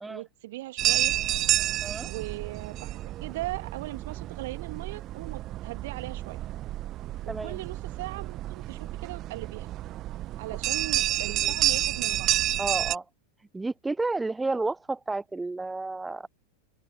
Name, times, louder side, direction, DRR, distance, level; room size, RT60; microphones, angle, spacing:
voice 1, 0.1-1.2 2.0-6.4 7.2-9.7 10.4-12.3, right 17 dB, 55° right, 2.6 m, -39 dB
sound 1, 0.8-13.0, right 14 dB, 35° right, 1.1 m, -30 dB
voice 2, 7.3-7.6 11.3-11.5 12.6-13.0 13.5-16.3, right 3 dB, 10° right, 0.8 m, -31 dB
open air
figure-of-eight pair, 90°, 0 cm